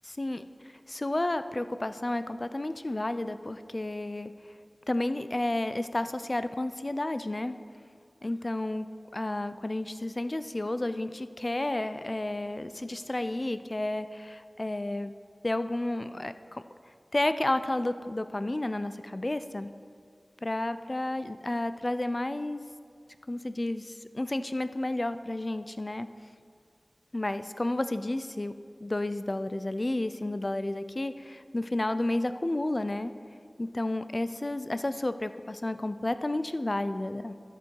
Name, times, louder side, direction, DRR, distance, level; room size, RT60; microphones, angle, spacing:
voice 1, 0.9-4.3 4.9-7.6 8.2-8.9 9.1-15.1 15.4-16.6 17.1-19.7 20.4-22.6 23.3-26.1 27.1-28.5 28.8-33.1 33.6-37.3, left 1 dB, 40° left, 12 dB, 0.4 m, -31 dB
12.0 x 6.9 x 4.6 m, 2.2 s
wide cardioid pair, 45°, 0 cm